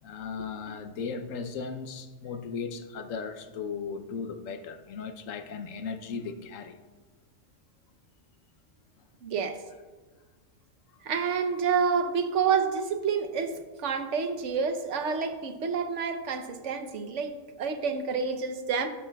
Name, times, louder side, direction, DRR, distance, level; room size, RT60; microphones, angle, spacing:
voice 1, 0.0-6.8, left 5 dB, 85° left, 8 dB, 1.1 m, -37 dB
voice 2, 9.2-9.6 11.0-17.3 17.6-18.9, right 6 dB, 70° right, 7 dB, 1.1 m, -28 dB
15.5 x 8.0 x 2.3 m, 1.3 s
omnidirectional pair, 1.3 m